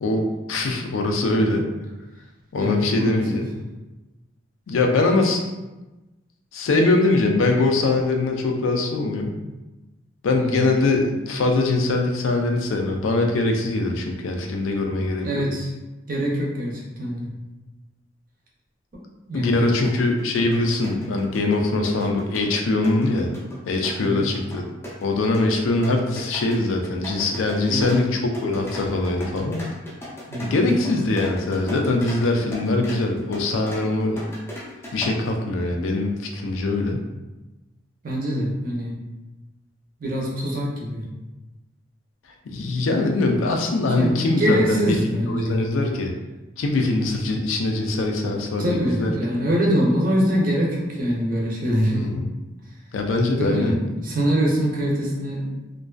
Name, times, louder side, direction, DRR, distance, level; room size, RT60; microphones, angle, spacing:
voice 1, 0.0-1.7 2.5-3.5 4.7-5.4 6.5-9.3 10.2-15.4 19.3-23.3 23.7-24.6 25.0-29.6 30.4-34.2 34.9-37.1 42.5-46.1 46.6-49.1 51.9-52.3 52.9-53.7, left 2 dB, 85° left, 3 dB, 0.4 m, -22 dB
voice 2, 2.6-3.4 10.3-10.7 15.2-15.7 16.1-17.3 19.3-19.8 24.0-24.2 27.7-28.0 30.3-30.8 38.0-39.0 40.0-41.0 43.9-45.7 48.6-52.0 53.3-55.5, equal, 45° right, -3 dB, 0.5 m, -24 dB
sound 1, 19.5-19.6 19.8-35.4, equal, 10° left, 0.4 m, -38 dB
2.4 x 2.3 x 2.3 m, 1.1 s
head